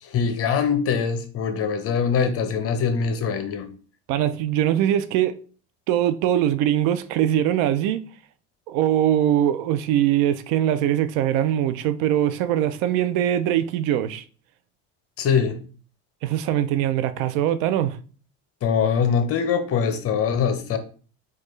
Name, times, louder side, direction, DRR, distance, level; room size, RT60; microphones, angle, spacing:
voice 1, 0.0-3.7 15.2-15.6 18.6-20.8, left 6 dB, 45° left, 0.7 m, -23 dB
voice 2, 4.1-5.4 5.9-8.0 8.7-14.2 16.2-18.0, right 11 dB, 75° right, 0.5 m, -22 dB
4.4 x 2.4 x 3.1 m
supercardioid pair, 100°, 31 cm